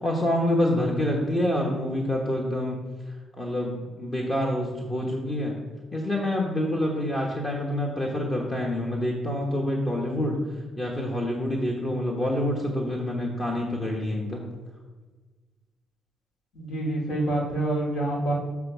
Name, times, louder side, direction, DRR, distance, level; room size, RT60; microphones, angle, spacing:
voice 1, 0.0-2.8 3.4-5.6 5.9-10.4 10.8-14.4, left 1 dB, 30° left, -1 dB, 1.2 m, -27 dB
voice 2, 16.5-18.3, right 1 dB, 80° left, -3 dB, 2.3 m, -27 dB
7.5 x 3.5 x 6.1 m, 1.3 s
cardioid pair, 90°, 0 cm